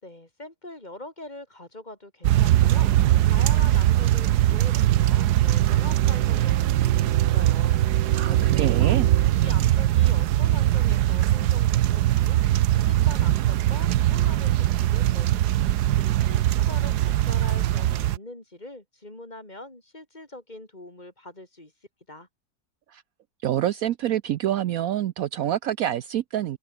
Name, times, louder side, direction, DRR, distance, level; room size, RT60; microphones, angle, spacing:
voice 1, 0.0-9.0 9.3-21.7 22.1-22.3, left 1 dB, 25° left, 3.8 m, -43 dB
sound 1, 2.2-18.2, right 13 dB, 85° right, 1.3 m, -21 dB
voice 2, 8.1-9.1 22.9-23.0 23.4-26.6, right 12 dB, 70° right, 1.0 m, -26 dB
omnidirectional pair, 1.7 m